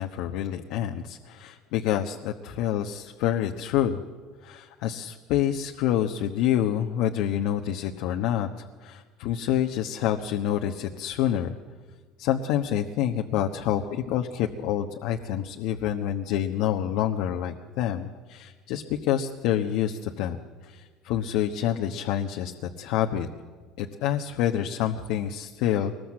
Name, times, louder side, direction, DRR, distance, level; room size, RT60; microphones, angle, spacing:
voice 1, 0.0-4.0 4.4-11.6 12.2-20.4 20.6-23.3 23.8-26.1, left 10 dB, 75° left, 4 dB, 1.2 m, -27 dB
23.0 x 20.5 x 7.6 m, 1.5 s
cardioid pair, 120°, 0 cm